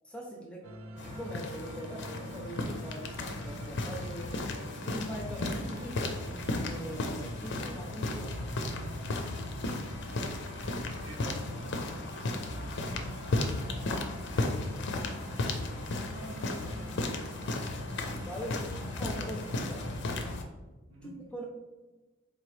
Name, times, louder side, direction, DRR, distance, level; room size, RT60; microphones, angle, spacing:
voice 1, 0.0-4.4 4.8-6.2 6.5-8.4 18.2-20.4 21.0-21.5, equal, 5° left, -2 dB, 0.5 m, -42 dB
sound 1, 0.6-20.0, right 2 dB, 85° right, 0.4 m, -48 dB
sound 2, 1.0-20.4, left 2 dB, 55° left, 0.5 m, -35 dB
voice 2, 8.7-9.7 10.1-12.2 12.5-13.8 14.1-14.7 15.0-15.8 16.0-17.6 20.9-21.1, equal, 65° right, -1 dB, 0.9 m, -50 dB
4.1 x 2.9 x 3.1 m, 1.2 s
head